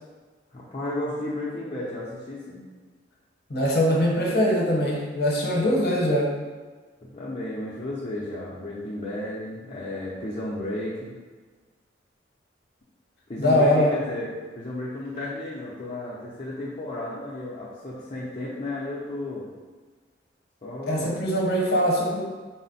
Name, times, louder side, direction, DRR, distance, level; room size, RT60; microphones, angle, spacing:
voice 1, 0.5-2.6 5.6-5.9 7.0-11.2 13.3-19.5 20.6-21.2, left 1 dB, 35° left, -7 dB, 0.6 m, -33 dB
voice 2, 3.5-6.4 13.4-14.0 20.9-22.2, equal, 60° left, -3 dB, 0.9 m, -22 dB
4.1 x 2.1 x 4.0 m, 1.4 s
head